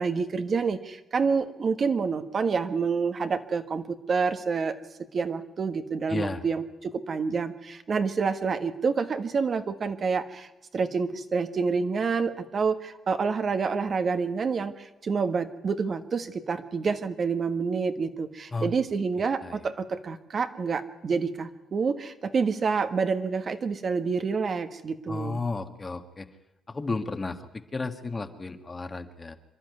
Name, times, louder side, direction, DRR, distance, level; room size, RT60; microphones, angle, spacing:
voice 1, 0.0-4.8 5.1-10.5 10.7-25.4, right 5 dB, 45° right, 8 dB, 1.5 m, -28 dB
voice 2, 6.1-6.4 18.5-18.7 19.4-19.6 25.1-26.3 26.7-29.4, left 3 dB, 25° left, 8 dB, 1.6 m, -33 dB
26.5 x 11.5 x 9.6 m, 0.99 s
cardioid pair, 90°, 0 cm